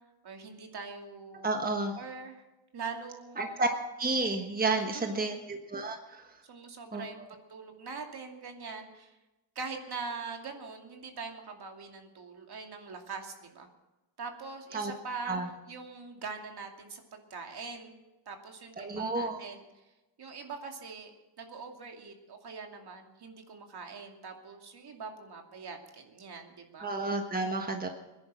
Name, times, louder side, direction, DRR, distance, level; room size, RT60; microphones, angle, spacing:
voice 1, 0.2-1.7 1.9-2.4 2.7-3.7 4.7-5.4 6.4-9.2 9.5-13.7 14.2-18.0 18.3-19.7 20.2-21.1 21.4-26.9, right 4 dB, 60° right, 3 dB, 2.6 m, -43 dB
voice 2, 1.4-2.0 3.4-3.7 4.0-6.3 6.9-7.0 14.7-14.9 15.3-15.5 18.8-19.4 26.8-27.9, right 3 dB, 20° right, 4 dB, 1.4 m, -31 dB
21.5 x 10.5 x 6.3 m, 1.0 s
wide cardioid pair, 125°, 44 cm